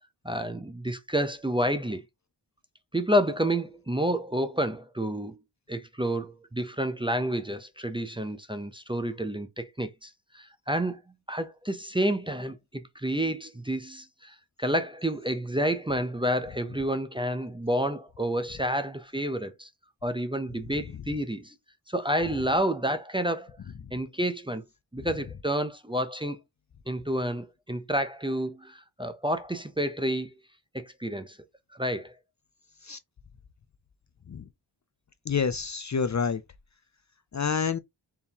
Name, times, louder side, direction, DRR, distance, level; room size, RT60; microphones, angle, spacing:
voice 1, 0.2-2.0 2.9-5.4 5.7-11.0 11.3-19.7 20.0-21.5 21.9-23.6 23.9-24.6 24.9-26.4 26.9-30.3 30.7-31.4 31.7-32.1, equal, 10° right, 0.5 m, -29 dB
voice 2, 35.3-36.4 37.3-37.8, left 6 dB, 40° left, 0.4 m, -28 dB
4.4 x 3.5 x 2.8 m
wide cardioid pair, 95°, 46 cm